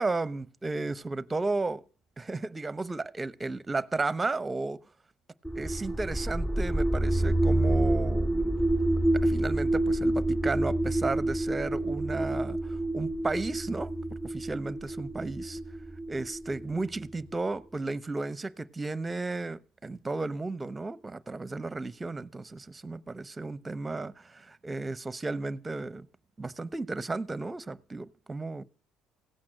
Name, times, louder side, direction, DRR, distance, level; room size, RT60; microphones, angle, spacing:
voice 1, 0.0-1.8 2.2-4.8 5.5-8.6 9.2-13.9 14.2-15.6 16.1-26.1 26.4-28.6, right 3 dB, 20° right, 0.9 m, -34 dB
sound 1, 5.4-17.2, right 1 dB, 5° left, 1.0 m, -28 dB
16.5 x 8.6 x 7.8 m
supercardioid pair, 80°, 0 cm